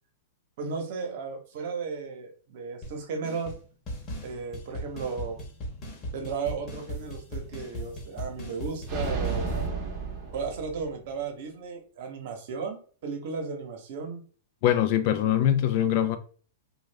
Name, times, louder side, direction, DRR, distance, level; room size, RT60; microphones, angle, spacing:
voice 1, 0.6-3.5 4.2-5.4 6.1-9.5 10.3-14.2, right 5 dB, 55° right, 0.9 m, -35 dB
sound 1, 2.8-3.0 3.2-3.6 3.9-9.7, equal, 30° left, 1.0 m, -38 dB
sound 2, 8.9-11.1, right 4 dB, 25° right, 0.8 m, -32 dB
voice 2, 14.6-16.2, left 11 dB, 50° left, 0.4 m, -23 dB
3.1 x 2.3 x 3.3 m
hypercardioid pair, 145°, 0 cm